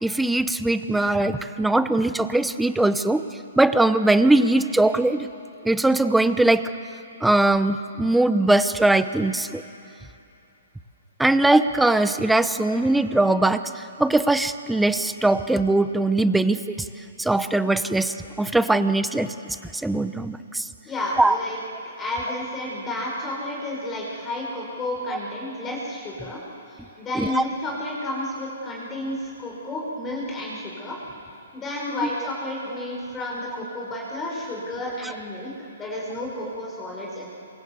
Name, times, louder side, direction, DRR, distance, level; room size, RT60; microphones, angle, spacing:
voice 1, 0.0-3.2 3.6-5.3 5.6-6.7 7.2-9.6 11.2-13.6 14.0-16.8 17.2-19.3 19.8-20.7 21.2-21.3 27.2-27.4, right 2 dB, 5° right, 11 dB, 0.8 m, -20 dB
voice 2, 20.8-21.6 22.0-26.4 26.7-31.0 31.5-37.3, left 1 dB, 15° left, -3 dB, 5.6 m, -31 dB
27.0 x 24.0 x 8.2 m, 2.8 s
hypercardioid pair, 150°, 0 cm